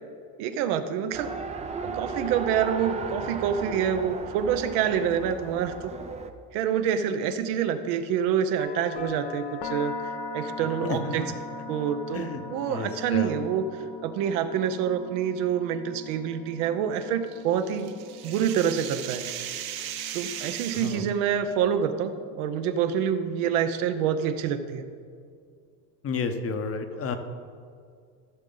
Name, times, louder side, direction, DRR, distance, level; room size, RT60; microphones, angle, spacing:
voice 1, 0.4-1.3 1.8-5.9 6.5-11.2 11.7-17.9 18.2-19.2 20.1-24.8, right 8 dB, 75° right, 9 dB, 0.9 m, -27 dB
Race car auto racing, 1.1-6.3, right 4 dB, 15° right, 0.5 m, -35 dB
sound 1, 8.6-22.5, left 3 dB, 60° left, 0.9 m, -41 dB
voice 2, 10.8-11.3 12.1-12.4 12.7-13.3 20.8-21.0 26.0-27.1, left 4 dB, 30° left, 7 dB, 0.8 m, -31 dB
sound 2, 17.3-21.1, right 10 dB, 50° right, 0.9 m, -37 dB
14.5 x 6.3 x 3.9 m, 2.2 s
supercardioid pair, 105°, 47 cm